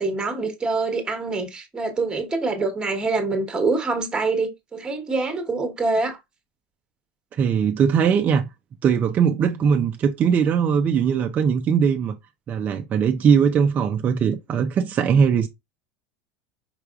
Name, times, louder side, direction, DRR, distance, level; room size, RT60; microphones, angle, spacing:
voice 1, 0.0-6.2, right 3 dB, 15° right, 1.2 m, -25 dB
voice 2, 7.3-8.4 8.8-12.2 12.5-15.5, right 7 dB, 35° right, 0.5 m, -20 dB
4.8 x 3.3 x 2.3 m
supercardioid pair, 115°, 5 cm